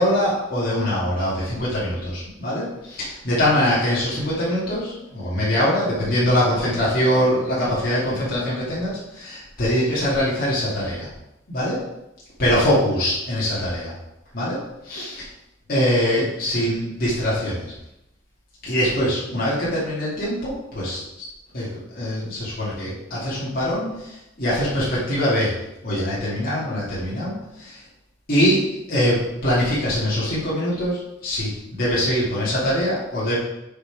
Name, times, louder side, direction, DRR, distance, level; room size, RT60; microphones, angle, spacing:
voice 1, 0.0-11.1 11.5-11.8 12.4-13.9 14.3-14.6 14.8-15.3 15.7-17.7 18.6-21.0 21.5-25.5 25.8-27.8 28.3-33.3, equal, 50° left, -9 dB, 2.5 m, -23 dB
6.5 x 5.4 x 4.8 m, 0.90 s
head